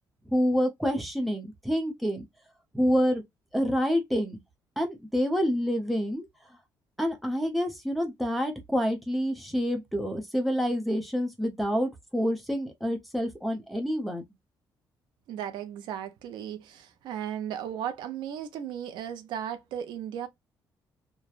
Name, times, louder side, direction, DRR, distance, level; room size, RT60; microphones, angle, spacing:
voice 1, 0.3-2.2 2.7-3.2 3.5-4.4 4.8-6.2 7.0-14.2, equal, ahead, 0.8 m, -27 dB
voice 2, 15.3-20.3, right 9 dB, 90° right, 0.6 m, -36 dB
3.1 x 2.2 x 2.4 m
cardioid pair, 140°, 8 cm